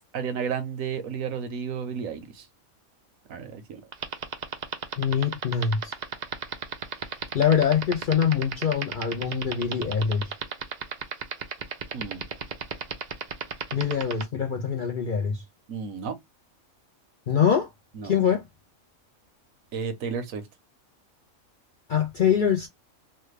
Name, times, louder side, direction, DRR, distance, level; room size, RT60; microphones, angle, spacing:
voice 1, 0.1-2.4 3.3-3.8 11.9-12.2 15.7-16.2 18.0-18.2 19.7-20.4, right 6 dB, 80° right, 1.1 m, -32 dB
sound 1, 3.9-14.2, right 7 dB, 55° right, 0.5 m, -31 dB
voice 2, 5.0-5.9 7.3-10.3 13.7-15.4 17.3-17.7 18.0-18.4 21.9-22.7, left 7 dB, 60° left, 0.5 m, -24 dB
3.2 x 2.3 x 3.1 m
omnidirectional pair, 1.4 m